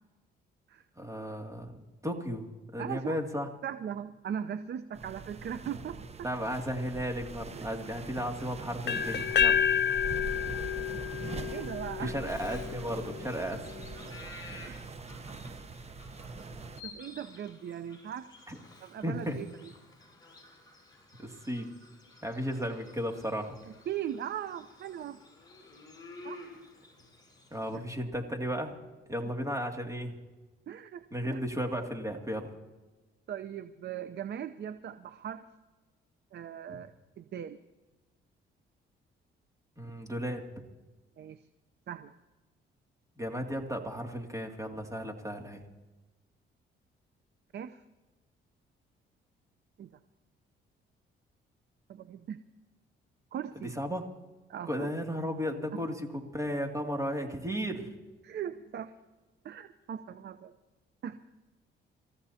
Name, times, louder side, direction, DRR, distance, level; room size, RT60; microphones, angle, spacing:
voice 1, 1.0-3.5 6.2-9.7 12.0-13.7 18.5-18.6 19.0-19.4 21.2-21.8 22.2-23.6 27.5-28.7 29.1-30.2 31.1-32.5 39.8-40.5 43.2-45.6 53.5-54.1 54.6-57.9, equal, 15° right, 3 dB, 2.5 m, -35 dB
voice 2, 2.8-3.2 3.6-6.0 7.6-7.7 11.5-12.2 14.7-14.8 16.8-18.3 18.8-19.5 23.7-25.2 26.2-26.4 30.7-31.0 31.3-31.4 33.3-35.4 36.3-37.6 41.2-41.4 41.9-42.1 47.5-47.8 49.8-49.9 51.9-52.4 53.3-53.8 54.5-54.9 58.2-58.9 59.4-60.5 61.0-61.2, right 9 dB, 60° right, 11 dB, 0.7 m, -39 dB
sound 1, 4.9-16.8, right 3 dB, 30° right, 0.9 m, -42 dB
sound 2, 8.9-12.8, left 8 dB, 60° left, 0.7 m, -29 dB
Bird vocalization bird call bird song, 12.3-27.8, left 3 dB, 20° left, 6.1 m, -52 dB
28.5 x 14.5 x 2.8 m, 1.2 s
cardioid pair, 90°, 20 cm